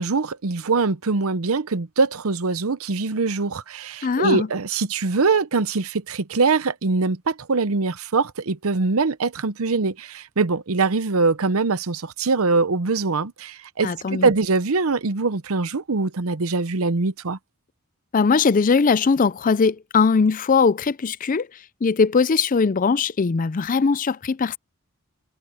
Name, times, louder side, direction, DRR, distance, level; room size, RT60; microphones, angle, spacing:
voice 1, 0.0-17.4, right 4 dB, 75° right, 0.8 m, -23 dB
voice 2, 4.0-4.5 13.8-14.3 18.1-21.5 21.8-24.6, left 5 dB, 40° left, 0.4 m, -20 dB
head